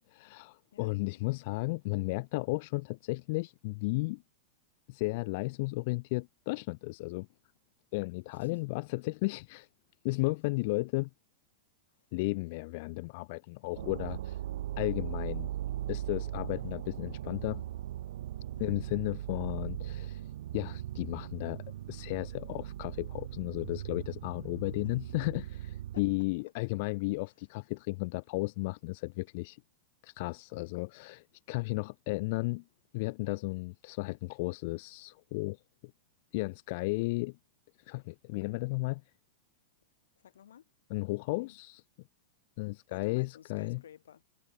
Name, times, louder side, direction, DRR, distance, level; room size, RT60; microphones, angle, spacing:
voice 1, 0.0-4.2 4.9-7.3 7.9-9.7 10.0-11.1 12.1-14.4 14.8-15.5 15.9-17.6 18.6-29.6 30.0-32.6 32.9-35.6 36.3-37.4 37.9-39.0 40.9-41.8 42.6-43.8, left 25 dB, 55° left, 0.6 m, -34 dB
sound 1, 13.8-26.2, right 12 dB, 70° right, 0.4 m, -39 dB
voice 2, 18.5-18.9 25.9-26.0 40.2-40.6 41.4-41.6 42.9-44.3, left 9 dB, 80° left, 3.0 m, -54 dB
hypercardioid pair, 110°, 0 cm